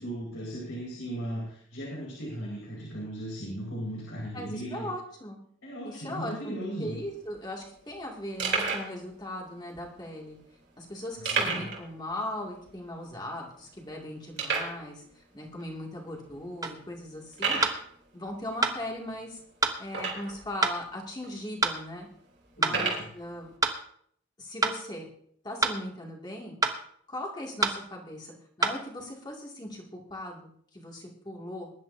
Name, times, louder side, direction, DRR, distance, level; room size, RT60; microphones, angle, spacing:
voice 1, 0.0-4.9 5.6-7.0 11.2-11.7 22.6-22.9, right 1 dB, 85° left, -5 dB, 5.3 m, -37 dB
voice 2, 4.3-5.4 5.8-6.5 6.8-10.4 10.8-15.0 15.3-17.6 18.1-19.4 19.8-22.1 22.6-23.5 24.4-25.1 25.4-26.5 27.1-31.7, left 1 dB, 20° left, -1 dB, 2.4 m, -39 dB
sound 1, 6.9-7.0 7.2-7.4 7.9-8.0 8.4-8.9 9.7-9.8 11.2-11.8 12.1-12.2 12.7-12.8 13.3-13.4 14.4-14.8 15.6-15.7 16.3-16.4 17.3-17.8 19.9-20.4 21.2-21.3 22.6-23.1, right 4 dB, 55° right, 3.4 m, -30 dB
sound 2, 16.6-16.8 17.6-17.8 18.6-18.8 19.6-19.8 20.6-20.8 21.6-21.8 22.6-22.8 23.6-23.8 24.6-24.8 25.6-25.8 26.6-26.8 27.6-27.8 28.6-28.8, right 3 dB, 15° right, 0.8 m, -26 dB
21.5 x 11.5 x 2.8 m, 0.65 s
head